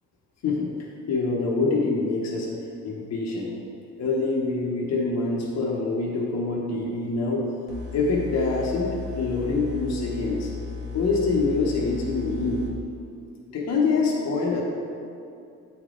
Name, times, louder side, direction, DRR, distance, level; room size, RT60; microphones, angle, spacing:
voice 1, 1.1-2.5 2.8-3.5 4.0-7.5 7.9-10.5 10.9-12.6 13.5-14.6, left 3 dB, 60° left, -3 dB, 0.9 m, -25 dB
sound 1, 7.7-12.7, left 6 dB, 85° right, 1.1 m, -36 dB
7.8 x 3.4 x 3.8 m, 2.6 s
cardioid pair, 90°, 30 cm